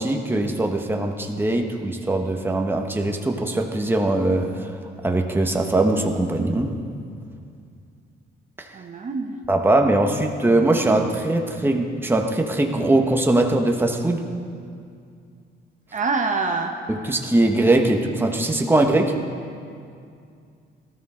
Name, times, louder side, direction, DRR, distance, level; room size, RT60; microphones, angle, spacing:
voice 1, 0.0-4.7 5.0-6.8 8.6-8.7 9.5-14.2 16.9-19.2, right 2 dB, 10° right, 3 dB, 1.2 m, -21 dB
voice 2, 8.7-9.4 15.9-16.7, right 4 dB, 40° right, 3 dB, 1.0 m, -25 dB
18.5 x 13.0 x 3.8 m, 2.4 s
cardioid pair, 90°, 20 cm